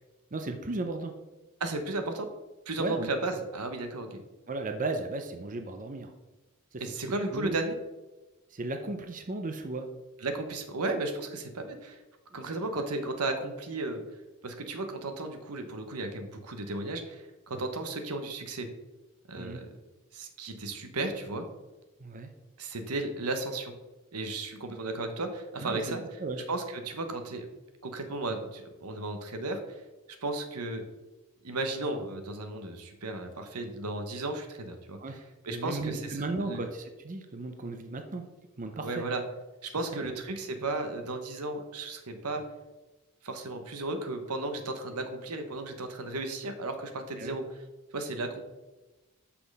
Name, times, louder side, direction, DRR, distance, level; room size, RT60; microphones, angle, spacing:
voice 1, 0.3-1.1 2.8-3.1 4.5-6.1 6.7-6.8 7.3-7.6 8.5-9.9 12.3-12.5 19.4-19.6 22.0-22.3 25.6-26.4 35.0-38.2 38.6-39.0 39.9-40.1 47.2-47.4, right 2 dB, 35° right, 6 dB, 0.6 m, -35 dB
voice 2, 1.6-2.3 2.7-4.2 6.8-7.7 10.2-12.0 12.3-14.0 14.4-18.7 19.3-19.7 20.1-21.5 22.6-23.7 24.1-26.0 26.5-27.5 27.8-29.8 30.2-30.8 31.4-35.0 35.5-36.2 36.4-36.6 38.8-39.2 39.6-42.4 43.2-47.4 47.9-48.4, right 2 dB, 90° right, 6 dB, 1.1 m, -34 dB
6.4 x 5.7 x 5.3 m, 1.1 s
head